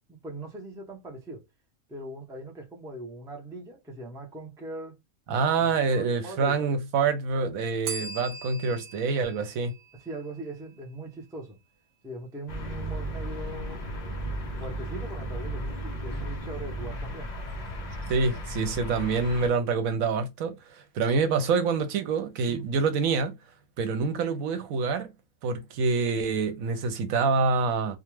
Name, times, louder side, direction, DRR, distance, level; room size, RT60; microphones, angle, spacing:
voice 1, 0.0-1.4 1.9-5.0 5.4-6.7 9.9-11.6 12.0-13.9 14.6-17.3 22.5-22.7, right 2 dB, 5° right, 0.4 m, -40 dB
voice 2, 5.3-9.7 18.1-23.3 23.8-25.1 25.4-28.0, right 4 dB, 80° right, 1.1 m, -26 dB
Bell, 7.8-10.7, right 4 dB, 60° right, 0.9 m, -40 dB
sound 1, 12.5-19.5, right 1 dB, 45° left, 0.6 m, -35 dB
2.4 x 2.3 x 3.0 m
omnidirectional pair, 1.4 m